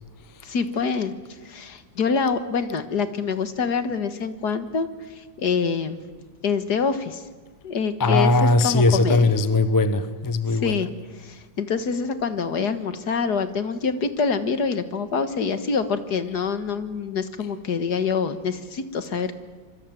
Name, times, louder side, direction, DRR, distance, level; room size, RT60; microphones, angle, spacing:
voice 1, 0.4-1.1 1.5-4.9 5.2-6.0 6.4-7.2 7.6-8.3 8.6-9.3 10.6-10.9 11.2-19.3, left 5 dB, 60° left, 2.0 m, -25 dB
voice 2, 8.0-10.9, left 2 dB, 15° left, 0.8 m, -20 dB
26.0 x 24.0 x 9.2 m
omnidirectional pair, 2.0 m